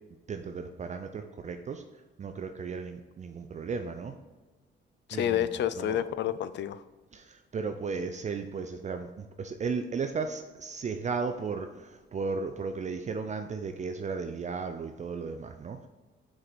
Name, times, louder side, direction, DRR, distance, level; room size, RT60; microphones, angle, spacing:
voice 1, 0.3-1.8 2.2-4.1 5.1-6.0 7.1-15.9, right 5 dB, 35° right, 7 dB, 0.5 m, -35 dB
voice 2, 5.1-6.8, left 11 dB, 65° left, 13 dB, 0.5 m, -29 dB
6.3 x 4.6 x 4.1 m, 1.2 s
cardioid pair, 90°, 20 cm